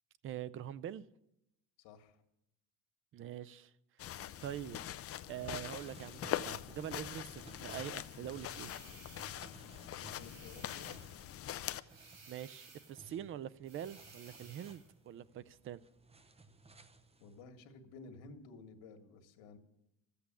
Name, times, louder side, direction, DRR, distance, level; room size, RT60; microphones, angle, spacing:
voice 1, 0.2-1.1 3.1-3.7 4.0-4.8 5.3-8.7 12.3-15.8, right 10 dB, 30° right, 0.4 m, -44 dB
voice 2, 1.8-2.2 9.9-10.9 17.2-19.6, left 4 dB, 90° left, 1.8 m, -54 dB
sound 1, 4.0-11.8, left 11 dB, 35° left, 0.5 m, -43 dB
sound 2, 5.6-17.4, right 2 dB, 15° right, 0.7 m, -59 dB
sound 3, 8.4-9.5 10.1-11.3 11.9-13.0 13.6-14.9, right 4 dB, 65° right, 5.0 m, -58 dB
14.0 x 8.4 x 8.6 m
cardioid pair, 135°, 43 cm